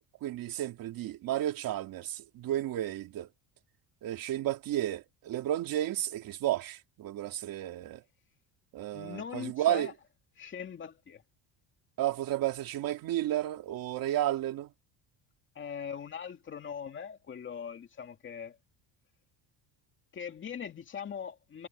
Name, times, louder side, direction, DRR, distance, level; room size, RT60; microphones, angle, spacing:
voice 1, 0.0-3.3 4.0-8.0 8.7-9.9 12.0-14.7, right 13 dB, 55° right, 2.8 m, -32 dB
voice 2, 8.9-9.9 10.4-11.2 15.6-18.6 20.1-21.7, left 7 dB, 30° left, 2.3 m, -41 dB
cardioid pair, 175°, 42 cm